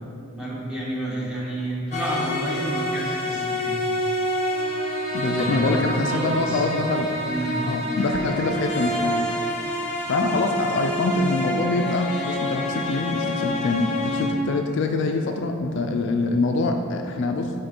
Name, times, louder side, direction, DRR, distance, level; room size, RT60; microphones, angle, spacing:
voice 1, 0.3-3.8 5.3-5.7 6.0-6.6 7.2-7.6, right 1 dB, 5° right, -7 dB, 1.0 m, -30 dB
sound 1, 1.9-14.3, equal, 30° left, 0.8 m, -27 dB
voice 2, 5.1-7.1 7.6-9.2 10.1-17.5, left 3 dB, 55° left, 4 dB, 0.3 m, -24 dB
5.2 x 4.2 x 4.3 m, 2.6 s
head